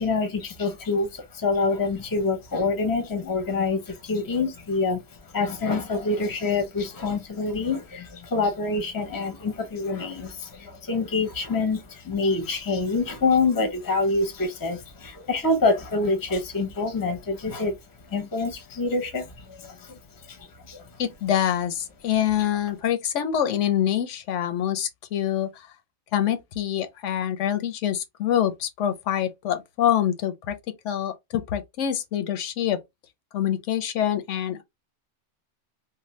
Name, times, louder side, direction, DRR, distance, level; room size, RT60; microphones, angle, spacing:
voice 1, 0.0-17.8 18.1-20.9, left 3 dB, 25° left, 0.6 m, -26 dB
voice 2, 21.0-25.6 26.1-30.5 30.8-32.8 33.3-34.6, left 10 dB, 90° left, 0.9 m, -25 dB
2.6 x 2.2 x 3.0 m
omnidirectional pair, 1.2 m